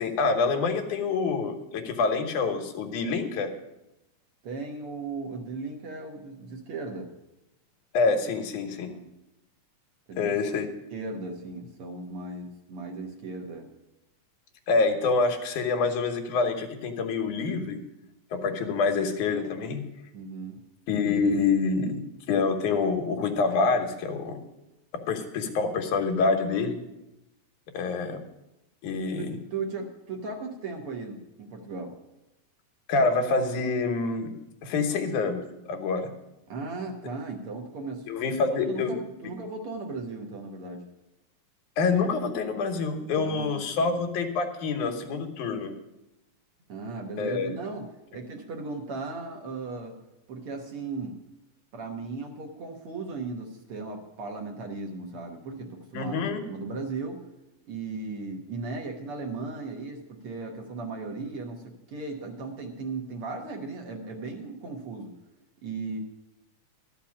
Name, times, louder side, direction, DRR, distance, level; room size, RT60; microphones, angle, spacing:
voice 1, 0.0-3.5 7.9-8.9 10.2-10.7 14.7-17.8 18.3-19.9 20.9-22.0 22.3-24.4 25.1-26.8 27.7-28.2 28.8-29.3 32.9-34.3 34.6-36.1 38.1-38.9 41.8-45.8 47.2-47.5 55.9-56.4, left 4 dB, 90° left, 5 dB, 2.7 m, -26 dB
voice 2, 4.4-7.1 8.9-9.0 10.1-10.3 10.9-13.7 20.1-20.6 29.2-31.9 36.5-40.8 43.2-44.0 46.7-50.0 50.3-51.2 51.7-56.2 56.5-57.2 57.7-65.1 65.6-66.0, right 3 dB, 55° right, 2 dB, 1.8 m, -37 dB
13.0 x 5.8 x 8.5 m, 0.92 s
omnidirectional pair, 3.4 m